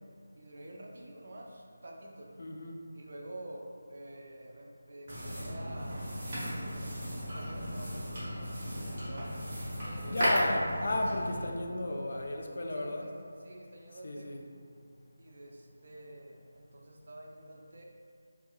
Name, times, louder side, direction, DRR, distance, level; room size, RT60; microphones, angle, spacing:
voice 1, 0.4-2.3 2.9-9.3 9.8-10.2 12.7-13.1 13.4-14.4 15.2-17.8, right 1 dB, 60° right, 0 dB, 0.4 m, -48 dB
voice 2, 2.4-2.8 10.1-13.1 14.0-14.4, left 1 dB, 60° left, 1 dB, 0.3 m, -33 dB
sound 1, 5.1-11.4, equal, 35° right, 0.8 m, -35 dB
2.7 x 2.2 x 2.6 m, 2.3 s
figure-of-eight pair, 165°, 0 cm